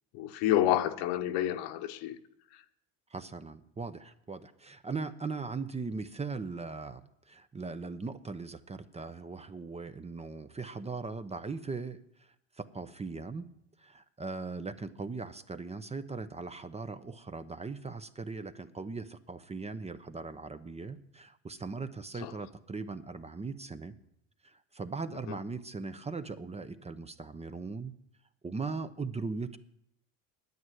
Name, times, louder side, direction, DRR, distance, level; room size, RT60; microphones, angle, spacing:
voice 1, 0.1-2.2 22.2-22.3 25.3-25.4, left 12 dB, 70° left, 1.3 m, -29 dB
voice 2, 3.1-13.5 13.8-23.9 24.4-27.9 28.4-29.6, right 4 dB, 15° right, 0.8 m, -39 dB
9.7 x 9.4 x 9.3 m
supercardioid pair, 95°, 42 cm